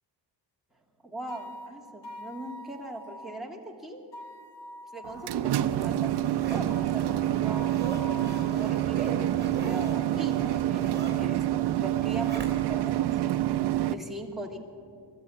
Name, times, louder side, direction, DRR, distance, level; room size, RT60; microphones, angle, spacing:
voice 1, 1.0-4.0 4.9-7.7 8.4-14.6, right 1 dB, ahead, -2 dB, 2.4 m, -41 dB
sound 1, 1.3-3.4 4.1-5.4 6.7-8.9, left 1 dB, 70° left, 2.3 m, -45 dB
sound 2, 5.0-13.9, right 13 dB, 60° right, 0.7 m, -27 dB
Zipper (clothing), 5.3-12.9 13.3-13.4, right 3 dB, 20° right, 3.5 m, -41 dB
22.0 x 14.0 x 8.6 m, 2.4 s
cardioid pair, 130°, 45 cm